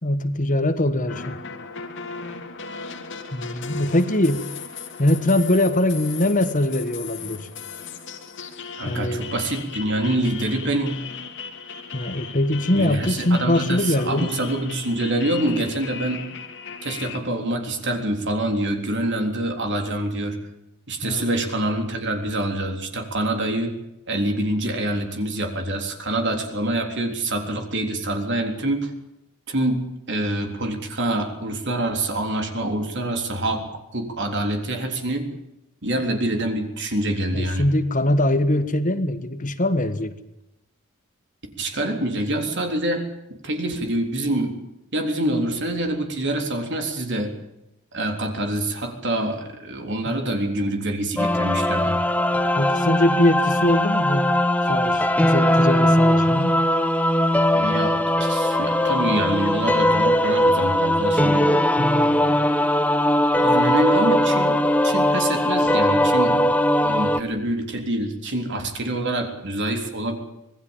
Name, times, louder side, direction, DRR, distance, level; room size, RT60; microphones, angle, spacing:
voice 1, 0.0-1.4 3.3-4.4 5.0-7.5 8.8-9.3 11.9-14.3 21.0-21.4 37.3-40.1 50.1-50.5 52.5-54.3 54.7-56.5 61.8-62.3, left 1 dB, 35° left, 10 dB, 1.4 m, -22 dB
sound 1, 1.1-17.2, left 6 dB, 55° left, 2.9 m, -37 dB
voice 2, 8.8-11.0 12.7-16.2 16.8-20.4 20.9-23.7 24.1-28.9 29.5-29.8 30.1-35.3 35.8-37.7 41.6-43.1 43.4-44.6 44.9-47.3 47.9-52.0 57.5-61.5 63.4-66.5 66.8-70.2, right 1 dB, 55° right, 5 dB, 3.7 m, -26 dB
sound 2, 51.2-67.2, left 1 dB, 5° left, 1.0 m, -20 dB
26.0 x 19.0 x 7.3 m, 0.89 s
head